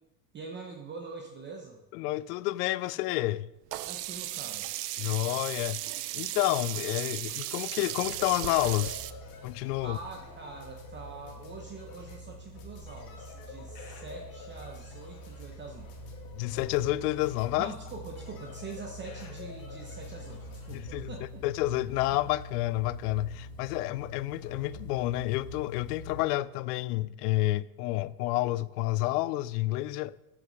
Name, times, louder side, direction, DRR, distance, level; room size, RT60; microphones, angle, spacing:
voice 1, 0.3-1.8 3.8-4.7 9.8-16.0 17.6-21.4, right 4 dB, 25° right, 0.9 m, -44 dB
voice 2, 2.0-3.5 5.0-5.8 6.1-9.0 9.4-10.0 16.3-17.7 20.7-21.1 21.4-30.1, left 17 dB, 70° left, 0.5 m, -29 dB
Sink (filling or washing), 3.7-9.1, right 15 dB, 70° right, 0.7 m, -36 dB
sound 1, 4.3-20.8, left 5 dB, 45° left, 2.2 m, -50 dB
sound 2, 8.0-26.2, left 1 dB, 15° left, 2.1 m, -45 dB
8.0 x 6.1 x 6.4 m
supercardioid pair, 125°, 48 cm